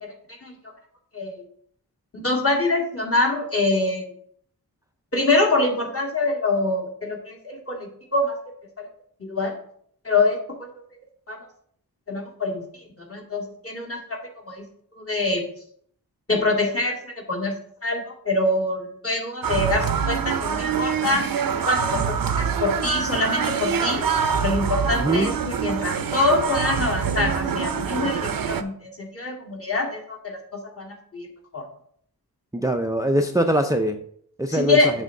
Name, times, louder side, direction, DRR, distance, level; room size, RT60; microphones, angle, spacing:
voice 1, 2.2-4.0 5.1-8.3 8.8-8.9 9.2-9.5 10.0-10.7 11.3-11.4 12.1-12.6 13.1-14.2 14.5-14.6 15.0-15.5 16.3-17.5 17.8-21.2 21.7-24.0 24.4-30.4 30.8-31.3 31.5-31.6 34.5-34.9, left 2 dB, 35° left, 0 dB, 2.0 m, -24 dB
sound 1, 19.4-28.6, right 7 dB, 60° right, 0.7 m, -25 dB
voice 2, 24.9-25.3 32.5-34.0 34.4-34.8, right 1 dB, 10° right, 5 dB, 0.5 m, -22 dB
7.9 x 3.6 x 6.4 m, 0.65 s
wide cardioid pair, 100°, 38 cm